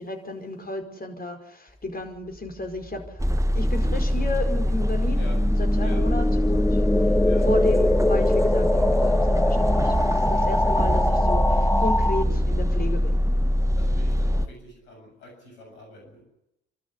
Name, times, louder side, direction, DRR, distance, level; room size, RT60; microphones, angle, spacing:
voice 1, 0.0-3.0 3.5-5.3 5.6-6.8 7.5-13.3, left 2 dB, 30° left, 5 dB, 5.0 m, -33 dB
sound 1, 2.9-12.2, left 1 dB, 5° left, 1.4 m, -24 dB
sound 2, 3.2-14.5, equal, 10° right, 1.1 m, -23 dB
voice 2, 5.8-6.1 7.2-7.5 10.3-10.5 13.7-16.2, left 1 dB, 85° left, 1 dB, 7.6 m, -44 dB
27.0 x 13.0 x 9.8 m, 0.85 s
hypercardioid pair, 50°, 32 cm